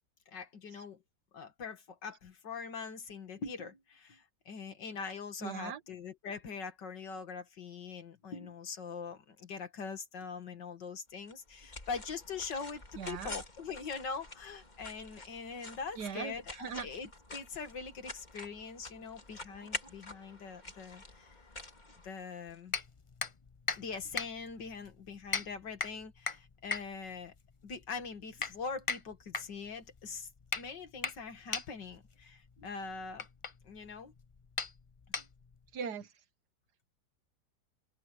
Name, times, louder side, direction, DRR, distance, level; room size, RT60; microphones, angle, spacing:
voice 1, 0.3-1.0 1.3-21.3 22.0-22.8 23.8-27.3 27.6-30.3 30.5-33.3 33.6-34.1 35.2-35.3, left 5 dB, 85° left, 2.6 m, -43 dB
voice 2, 5.4-5.8 12.9-13.4 16.0-16.9 35.7-36.1, right 6 dB, 70° right, 1.6 m, -40 dB
sound 1, 11.3-22.6, left 2 dB, 25° left, 2.5 m, -48 dB
sound 2, 22.7-35.7, left 4 dB, 45° left, 0.4 m, -40 dB
open air
omnidirectional pair, 1.9 m